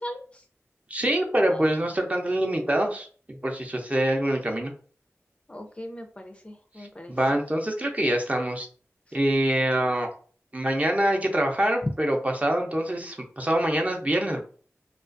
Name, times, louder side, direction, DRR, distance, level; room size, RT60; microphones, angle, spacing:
voice 1, 0.9-3.1 3.4-4.7 6.8-8.7 9.1-10.1 10.5-14.4, right 1 dB, 25° right, 2 dB, 0.5 m, -25 dB
voice 2, 5.5-7.1 11.8-11.9, left 1 dB, 20° left, 4 dB, 0.4 m, -36 dB
2.3 x 2.2 x 2.5 m, 0.43 s
wide cardioid pair, 45°, 5 cm